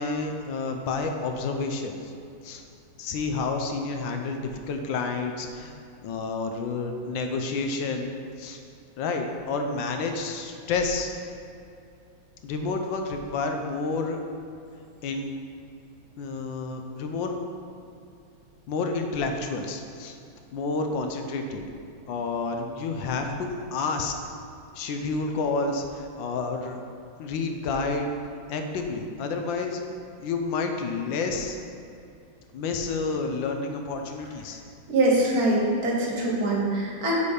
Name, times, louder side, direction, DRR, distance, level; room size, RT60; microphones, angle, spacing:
voice 1, 0.0-2.1 2.4-2.6 3.0-5.7 6.0-8.1 8.4-8.6 9.0-11.3 12.4-14.2 15.0-15.3 16.2-17.4 18.7-20.2 20.5-21.6 22.1-24.1 24.7-26.8 27.2-28.1 28.5-29.8 30.2-31.6 32.5-34.6, left 4 dB, 75° left, 4 dB, 1.3 m, -29 dB
voice 2, 34.9-37.1, right 1 dB, 50° right, -3 dB, 1.5 m, -23 dB
6.9 x 4.2 x 4.8 m, 2.6 s
omnidirectional pair, 2.2 m